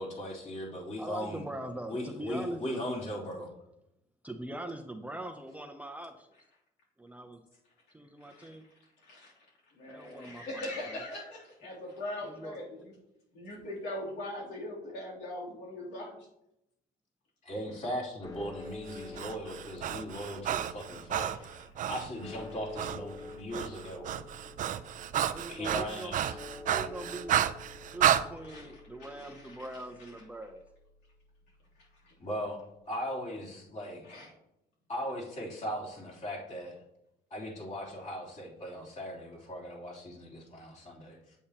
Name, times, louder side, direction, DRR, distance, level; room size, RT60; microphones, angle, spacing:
voice 1, 0.0-1.5 1.9-3.5 17.4-21.6 21.9-24.1 25.5-26.3 32.2-34.2 34.9-36.7 37.3-41.3, equal, 40° left, -5 dB, 3.3 m, -38 dB
voice 2, 1.0-2.8 4.2-6.3 7.0-7.4 7.9-8.6 9.9-11.0 11.6-11.7 12.2-12.9 25.3-26.2 26.7-27.4 27.9-30.6, right 1 dB, 10° right, 5 dB, 0.6 m, -42 dB
voice 3, 9.7-12.9 13.3-16.1 19.1-19.2 28.4-29.7 32.0-32.1 34.0-34.3, left 1 dB, 90° left, -4 dB, 3.1 m, -41 dB
sound 1, 18.2-32.5, left 3 dB, 20° left, 1.1 m, -49 dB
Breathing, 18.9-22.1 22.8-23.0 23.3-28.2, right 10 dB, 50° right, 0.5 m, -31 dB
8.4 x 8.3 x 2.9 m, 0.86 s
cardioid pair, 110°, 17 cm